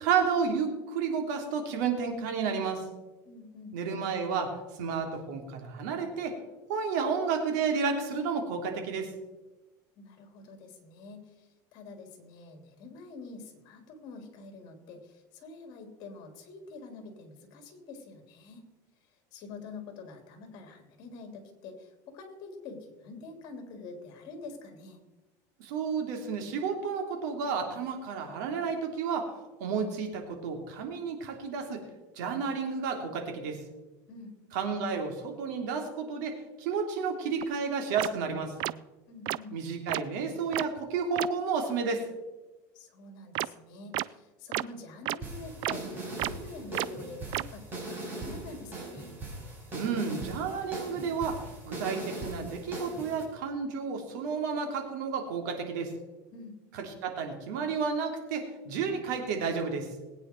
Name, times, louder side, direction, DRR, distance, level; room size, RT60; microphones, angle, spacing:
voice 1, 0.0-2.8 3.7-4.5 4.8-6.4 6.7-9.1 25.6-29.3 29.6-31.8 32.2-33.6 34.5-38.5 39.5-42.0 49.7-51.4 51.6-55.9 56.7-59.9, right 5 dB, 75° right, 4 dB, 3.0 m, -31 dB
voice 2, 3.2-3.7 10.0-18.7 19.3-25.0 34.1-34.3 39.1-39.6 42.7-49.1 56.3-56.6, left 3 dB, 50° left, 5 dB, 3.2 m, -46 dB
sound 1, 37.4-37.5 38.0-38.1 38.6-38.7 39.3-39.4 39.9-40.0 40.5-40.6 41.2-41.3 43.3-43.5 43.9-44.0 44.5-44.6 45.1-45.2 45.6-45.7 46.2-46.3 46.7-46.9 47.3-47.4, right 18 dB, 50° right, 0.4 m, -30 dB
sound 2, 45.2-53.2, right 2 dB, 20° right, 4.7 m, -40 dB
20.5 x 9.2 x 4.6 m, 1.1 s
cardioid pair, 155°, 10 cm